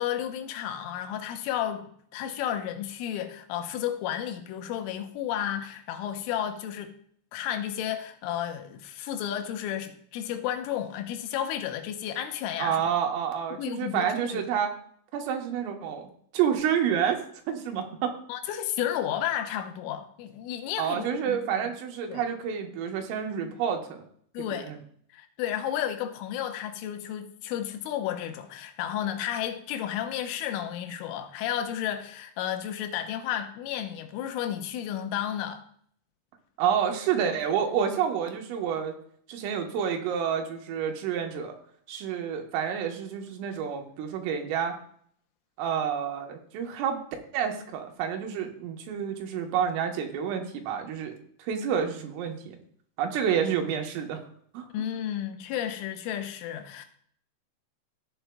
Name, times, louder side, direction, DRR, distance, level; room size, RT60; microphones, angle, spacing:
voice 1, 0.0-6.9 7.3-12.8 13.6-14.4 18.3-21.7 22.1-22.2 24.3-24.7 25.1-35.6 54.7-56.9, left 10 dB, 85° left, 3.3 m, -32 dB
voice 2, 12.6-14.7 15.1-16.1 16.3-17.2 17.5-18.1 20.8-24.0 24.4-24.8 36.6-39.0 39.3-41.6 41.9-44.8 45.6-47.0 47.3-51.1 51.4-52.6 53.0-54.2 54.5-54.7, right 8 dB, 85° right, 3.7 m, -29 dB
15.0 x 8.8 x 2.3 m
omnidirectional pair, 5.7 m